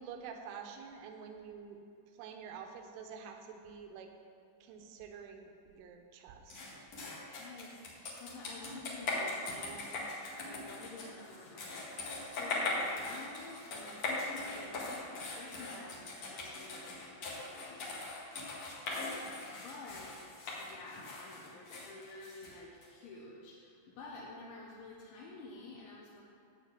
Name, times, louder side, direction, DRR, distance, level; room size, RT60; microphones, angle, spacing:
voice 1, 0.0-1.8 2.2-4.1 4.6-6.6 9.1-10.1, right 6 dB, 80° right, 4 dB, 3.3 m, -48 dB
sound 1, 6.5-22.9, left 2 dB, 55° left, 2.1 m, -40 dB
voice 2, 7.1-10.0 10.4-17.9 19.2-26.2, left 3 dB, 75° left, -5 dB, 3.2 m, -51 dB
11.5 x 4.6 x 8.3 m, 2.6 s
omnidirectional pair, 5.6 m